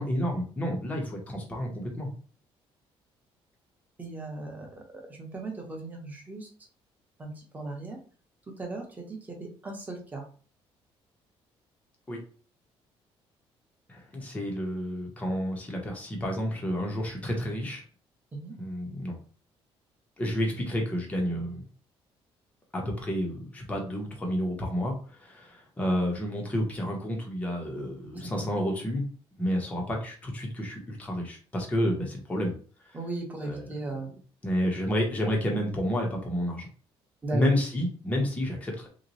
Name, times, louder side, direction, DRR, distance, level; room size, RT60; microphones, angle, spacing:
voice 1, 0.0-2.1 12.1-12.2 13.9-17.8 18.6-19.2 20.2-21.6 22.7-29.0 29.4-32.5 32.8-33.0 33.4-33.6 34.4-36.7 37.3-38.9, equal, 15° left, -1 dB, 0.8 m, -30 dB
voice 2, 4.0-4.8 5.1-6.5 7.2-8.0 8.6-10.2 18.3-18.5 28.1-28.2 32.9-34.1 37.2-37.4, right 2 dB, 15° right, 0 dB, 1.0 m, -37 dB
3.0 x 2.2 x 3.9 m, 0.40 s
cardioid pair, 155°, 10 cm